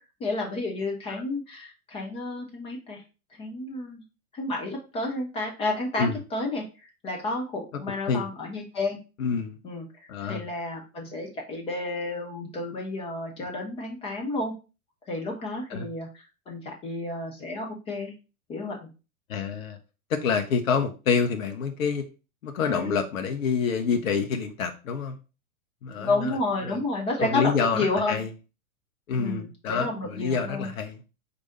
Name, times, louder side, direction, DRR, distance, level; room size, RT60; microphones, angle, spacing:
voice 1, 0.2-3.0 3.4-4.0 4.3-9.0 9.6-14.5 15.1-18.1 18.5-18.9 22.6-22.9 26.0-28.2 29.1-30.7, left 2 dB, 15° left, 0 dB, 0.5 m, -31 dB
voice 2, 9.2-9.6 10.1-10.4 15.7-15.9 19.3-19.8 20.1-22.0 22.4-25.2 25.8-26.4 26.6-26.8 27.2-28.3 29.1-31.0, left 5 dB, 65° left, 6 dB, 0.7 m, -27 dB
4.7 x 2.6 x 4.0 m, 0.32 s
figure-of-eight pair, 100°, 44 cm